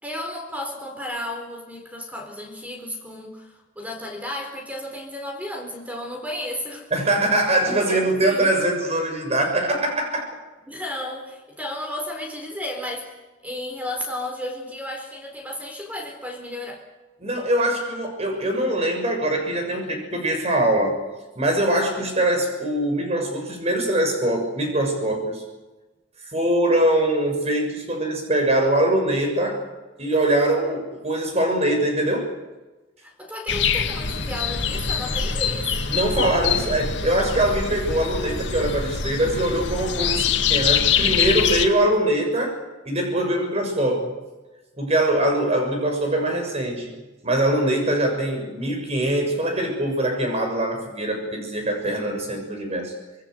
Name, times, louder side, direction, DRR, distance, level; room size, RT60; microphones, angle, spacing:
voice 1, 0.0-6.9 7.9-8.5 10.7-16.8 33.0-35.9, left 1 dB, 10° right, 4 dB, 4.4 m, -33 dB
voice 2, 6.9-10.3 17.2-21.0 21.3-25.4 26.3-29.6 30.0-32.3 35.9-42.6 42.8-44.1 44.8-46.9 47.2-52.9, right 1 dB, 35° right, 4 dB, 6.8 m, -23 dB
sound 1, 33.5-41.7, left 7 dB, 75° left, 2.1 m, -24 dB
26.0 x 21.5 x 8.0 m, 1.2 s
head